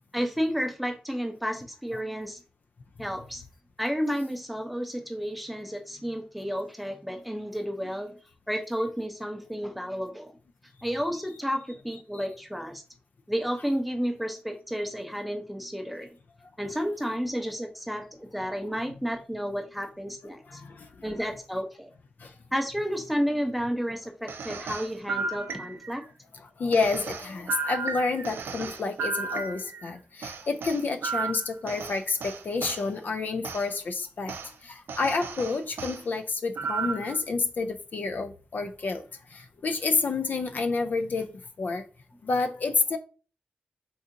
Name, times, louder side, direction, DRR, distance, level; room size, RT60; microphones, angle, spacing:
voice 1, 0.1-2.4 3.0-3.4 3.8-8.2 8.5-10.3 10.8-12.8 13.3-16.1 16.6-20.6 21.0-21.9 22.5-26.0, equal, ahead, 0.5 m, -31 dB
sound 1, 24.3-26.0 26.7-29.9 30.2-32.8 33.4-33.6 34.3-34.5 34.9-36.0 36.6-37.2, right 4 dB, 85° right, 0.3 m, -34 dB
voice 2, 26.6-34.3 34.6-39.0 39.3-41.3 41.6-41.8 42.2-43.0, left 4 dB, 55° left, 0.3 m, -29 dB
3.7 x 2.7 x 2.5 m
wide cardioid pair, 100°, 4 cm